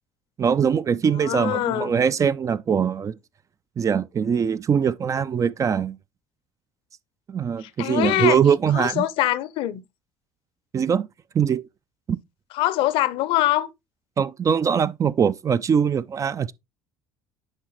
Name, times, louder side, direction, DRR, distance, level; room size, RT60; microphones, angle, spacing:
voice 1, 0.4-3.1 3.8-6.0 7.3-9.0 10.7-11.1 11.3-11.6 12.1-12.2 14.2-16.5, right 7 dB, 30° right, 0.5 m, -22 dB
voice 2, 1.2-1.9 7.6-8.4 8.7-9.8 12.5-13.7, left 14 dB, 60° left, 0.7 m, -23 dB
9.9 x 3.8 x 3.1 m
hypercardioid pair, 65°, 10 cm